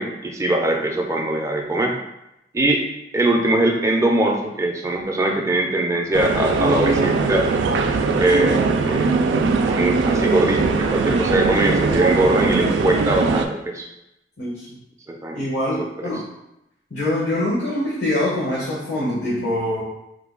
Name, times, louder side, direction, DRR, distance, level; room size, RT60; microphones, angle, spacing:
voice 1, 0.0-2.0 2.5-2.8 3.1-7.5 8.0-9.1 9.6-13.9 15.1-15.4 16.0-16.1, right 1 dB, 15° right, 1 dB, 0.4 m, -21 dB
sound 1, 6.1-13.5, right 4 dB, 90° right, 0.3 m, -20 dB
voice 2, 14.4-14.8 15.3-16.2 16.9-19.8, left 1 dB, 75° left, -7 dB, 0.9 m, -24 dB
3.2 x 2.2 x 3.6 m, 0.86 s
head